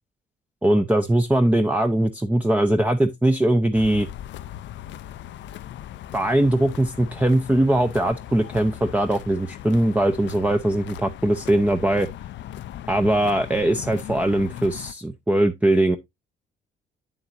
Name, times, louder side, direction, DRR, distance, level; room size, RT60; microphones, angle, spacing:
voice 1, 0.6-4.1 6.1-12.1 12.9-16.0, right 1 dB, 5° right, 0.6 m, -21 dB
sound 1, 3.7-14.9, left 12 dB, 70° left, 0.5 m, -38 dB
8.0 x 7.2 x 2.5 m
cardioid pair, 90°, 20 cm